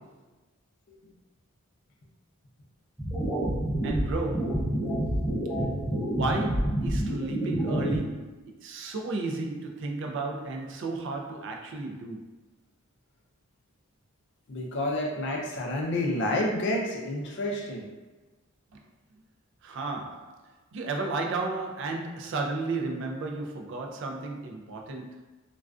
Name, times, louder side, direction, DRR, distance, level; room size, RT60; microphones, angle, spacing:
sound 1, 3.0-8.0, right 1 dB, ahead, 0.6 m, -28 dB
voice 1, 3.8-4.8 6.1-12.3 18.7-18.8 19.6-25.2, right 3 dB, 55° right, 0.3 m, -33 dB
voice 2, 14.5-17.9, left 1 dB, 50° left, 0.4 m, -29 dB
2.3 x 2.3 x 2.3 m
head